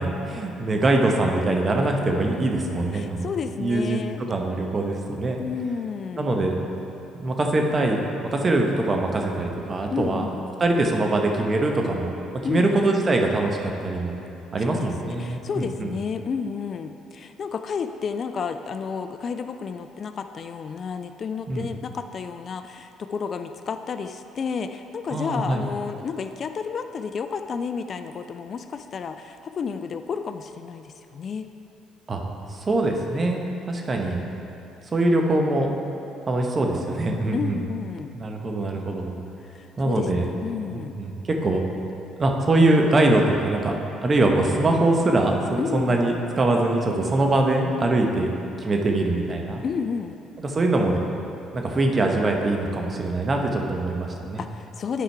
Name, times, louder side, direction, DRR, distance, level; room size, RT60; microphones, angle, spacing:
voice 1, 0.0-3.3 3.6-5.4 6.2-6.5 7.2-8.0 8.4-10.3 10.6-12.1 12.5-14.2 14.5-15.9 21.5-21.7 25.1-25.6 32.1-32.2 32.7-33.4 33.7-34.2 34.9-35.7 36.3-37.6 38.1-39.2 39.8-40.2 40.7-41.6 42.2-43.7 44.0-48.3 48.6-49.6 50.5-51.1 51.5-54.4, right 2 dB, 35° right, 2 dB, 1.0 m, -23 dB
voice 2, 2.9-4.2 5.4-6.3 9.9-10.5 12.4-12.8 14.6-31.5 37.3-38.1 39.4-40.9 45.6-46.0 49.6-50.2 54.4-55.0, left 6 dB, 50° left, 8 dB, 0.4 m, -31 dB
9.1 x 4.9 x 4.7 m, 2.8 s
supercardioid pair, 65°, 0 cm